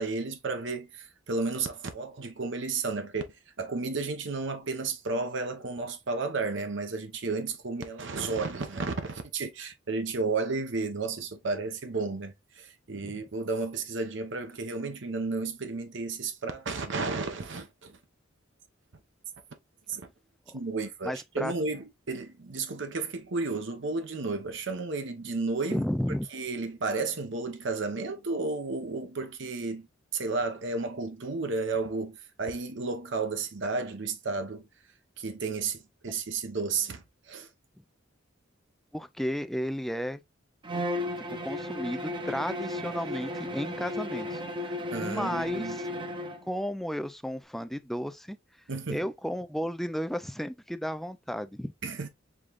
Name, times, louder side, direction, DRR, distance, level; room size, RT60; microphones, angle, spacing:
voice 1, 0.0-3.3 3.6-18.0 19.9-20.1 20.5-25.8 26.3-29.9 30.1-34.7 35.2-37.5 44.9-45.8 48.7-49.0 51.8-52.1, right 3 dB, 65° right, 0.9 m, -32 dB
voice 2, 21.0-21.5 25.7-26.3 38.9-40.2 41.3-45.9 46.5-48.4 48.9-51.7, equal, ahead, 0.3 m, -33 dB
Bowed string instrument, 40.6-46.5, left 1 dB, 25° right, 0.8 m, -34 dB
5.0 x 3.7 x 2.4 m
head